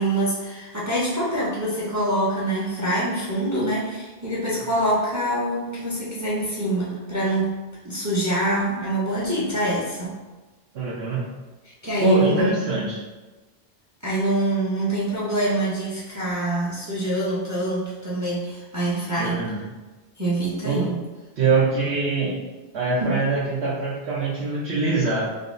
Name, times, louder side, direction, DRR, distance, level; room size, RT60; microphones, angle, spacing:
voice 1, 0.0-7.6 7.8-10.1 11.8-12.9 14.0-19.5 20.2-21.0 23.0-23.2, right 1 dB, 20° right, -7 dB, 0.6 m, -25 dB
voice 2, 10.7-11.2 12.0-13.0 19.2-19.6 20.6-20.8 21.4-22.4 22.7-25.2, right 3 dB, 85° right, -8 dB, 1.0 m, -23 dB
5.0 x 2.0 x 2.5 m, 1.2 s
omnidirectional pair, 1.1 m